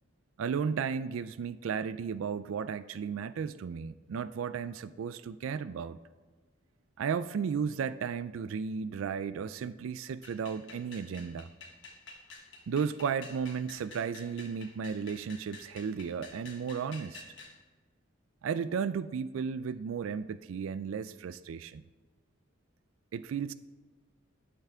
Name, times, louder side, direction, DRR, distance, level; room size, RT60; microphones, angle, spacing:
voice 1, 0.4-6.0 7.0-11.5 12.7-17.2 18.4-21.8 23.1-23.5, right 6 dB, 75° right, 15 dB, 0.3 m, -34 dB
sound 1, 10.2-17.6, left 3 dB, 60° left, 1.3 m, -50 dB
12.5 x 5.8 x 4.4 m, 1.4 s
head